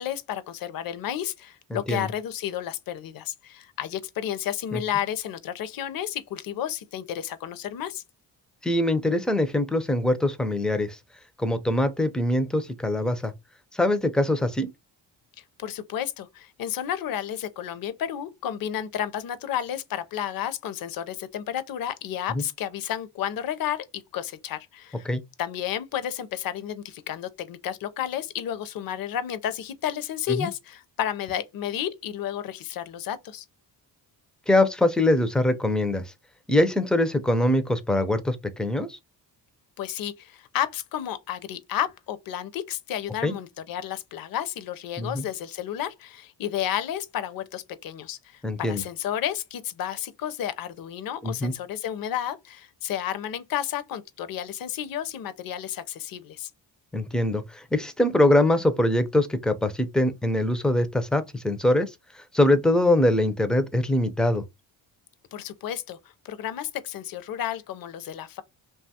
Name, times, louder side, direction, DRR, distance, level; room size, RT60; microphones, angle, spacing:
voice 1, 0.0-8.0 15.4-25.1 25.4-33.4 39.8-56.5 65.3-66.0 66.2-68.4, left 10 dB, 55° left, 0.5 m, -32 dB
voice 2, 1.7-2.1 4.7-4.8 8.6-11.0 11.4-13.3 13.7-14.7 22.3-22.4 25.1-25.2 30.3-30.5 34.5-36.0 36.5-39.0 43.2-43.3 45.0-45.3 48.4-48.8 51.2-51.5 56.9-64.4, left 1 dB, ahead, 0.3 m, -23 dB
2.7 x 2.3 x 2.7 m
cardioid pair, 90°, 43 cm